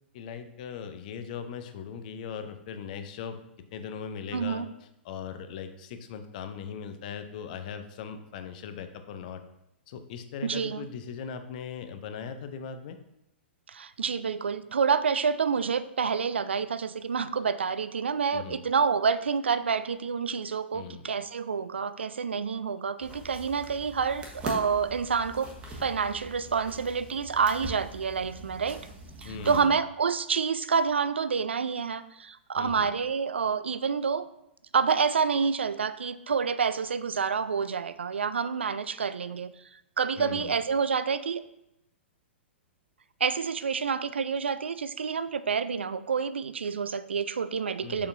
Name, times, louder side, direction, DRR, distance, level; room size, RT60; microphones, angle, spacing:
voice 1, 0.1-3.4 3.7-4.7 5.0-9.4 9.9-13.0 18.3-18.6 20.7-21.0 29.2-29.8 32.6-32.9 40.2-40.6 47.8-48.1, left 7 dB, 45° left, 8 dB, 0.7 m, -39 dB
voice 2, 4.3-4.7 10.4-10.9 13.7-28.8 29.2-34.3 34.7-39.5 40.0-41.4 43.2-48.1, right 6 dB, 70° right, 14 dB, 0.4 m, -28 dB
sound 1, 23.0-29.6, right 1 dB, 15° right, 1.2 m, -42 dB
6.7 x 5.1 x 2.7 m, 0.84 s
figure-of-eight pair, 110°, 6 cm